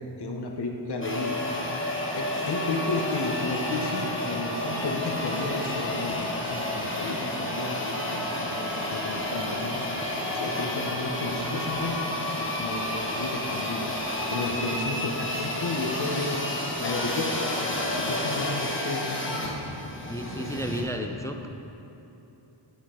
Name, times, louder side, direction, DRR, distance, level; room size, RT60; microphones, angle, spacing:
voice 1, 0.2-1.4 1.8-12.0 12.3-13.9 14.3-19.5, left 2 dB, 55° left, 2 dB, 0.8 m, -33 dB
sound 1, 1.0-20.8, left 1 dB, 25° left, 1.2 m, -30 dB
voice 2, 20.1-21.5, equal, 5° left, 4 dB, 0.4 m, -32 dB
8.8 x 6.7 x 3.7 m, 2.9 s
wide cardioid pair, 55°, 49 cm